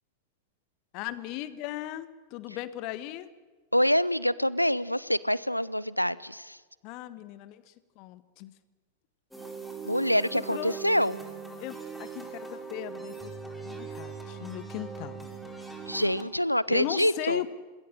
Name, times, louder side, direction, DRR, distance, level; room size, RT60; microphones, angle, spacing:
voice 1, 0.9-3.3 6.8-8.5 10.3-10.8 11.6-13.3 13.6-15.3 16.7-17.5, left 15 dB, 45° left, 15 dB, 1.4 m, -37 dB
voice 2, 3.7-6.6 9.8-11.2 15.9-17.4, equal, 90° left, 21 dB, 0.6 m, -26 dB
sound 1, 9.3-16.2, right 5 dB, ahead, 4.0 m, -40 dB
27.0 x 20.5 x 6.6 m, 1.4 s
figure-of-eight pair, 90°, 0 cm